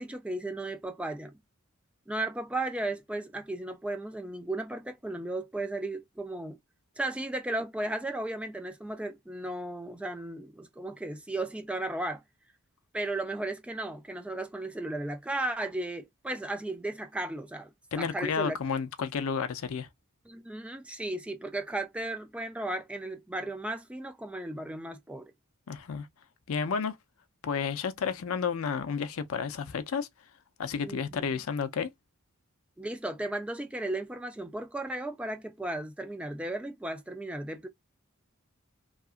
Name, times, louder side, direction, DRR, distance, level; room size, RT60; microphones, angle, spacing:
voice 1, 0.0-1.3 2.1-6.6 7.0-12.2 12.9-17.7 18.0-18.6 20.3-25.3 30.8-31.2 32.8-37.7, right 2 dB, 5° right, 0.3 m, -35 dB
voice 2, 17.9-19.9 25.7-26.1 26.5-27.0 27.4-30.1 30.6-31.9, left 6 dB, 70° left, 0.5 m, -31 dB
2.8 x 2.4 x 2.4 m
head